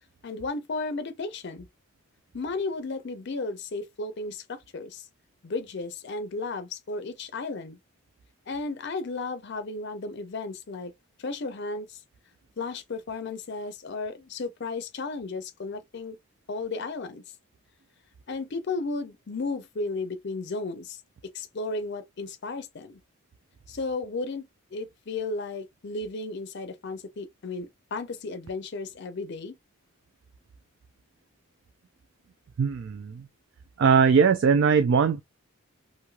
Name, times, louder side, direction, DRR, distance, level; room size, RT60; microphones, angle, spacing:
voice 1, 0.2-1.7 2.3-5.1 5.4-7.8 8.5-10.9 11.2-12.0 12.6-16.2 16.5-17.2 18.3-21.0 21.3-23.0 23.7-29.6, left 3 dB, 50° left, 0.5 m, -34 dB
voice 2, 32.6-33.3 33.8-35.2, right 6 dB, 55° right, 0.3 m, -20 dB
3.1 x 2.6 x 2.2 m
head